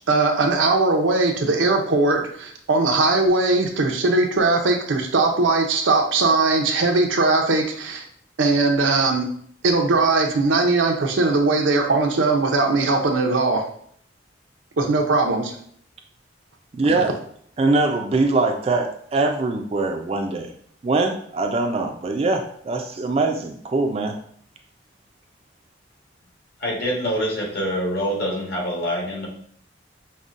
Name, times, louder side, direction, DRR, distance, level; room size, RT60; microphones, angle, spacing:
voice 1, 0.1-8.0 8.4-9.3 9.6-13.6 14.8-15.6, right 3 dB, 90° right, 3 dB, 0.6 m, -20 dB
voice 2, 16.7-17.1 17.6-20.5 20.8-24.2, right 3 dB, 30° right, 4 dB, 0.3 m, -22 dB
voice 3, 26.6-29.3, equal, 55° left, -3 dB, 1.2 m, -25 dB
5.2 x 2.1 x 2.5 m, 0.62 s
head